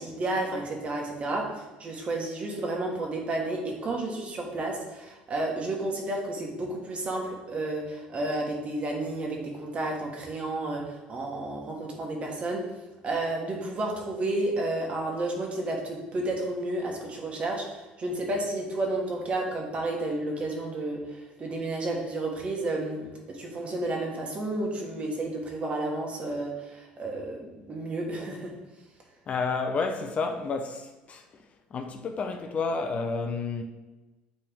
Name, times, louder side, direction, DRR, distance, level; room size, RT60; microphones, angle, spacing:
voice 1, 0.0-12.6 13.0-28.5, right 2 dB, 35° right, 1.4 m, -31 dB
voice 2, 29.3-31.2 31.7-33.6, left 4 dB, 35° left, 0.5 m, -30 dB
8.7 x 3.4 x 3.6 m
cardioid pair, 125°, 4 cm